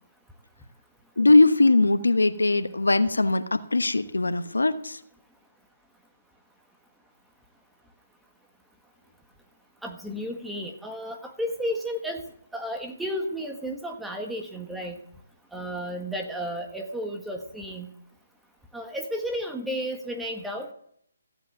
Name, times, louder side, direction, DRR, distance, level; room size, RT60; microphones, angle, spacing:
voice 1, 1.2-5.0, left 2 dB, 90° left, 10 dB, 1.1 m, -20 dB
voice 2, 9.8-12.3 12.5-15.0 15.5-17.9 18.7-20.7, equal, 5° right, 3 dB, 1.4 m, -33 dB
15.0 x 8.1 x 7.2 m, 0.68 s
figure-of-eight pair, 150°, 0 cm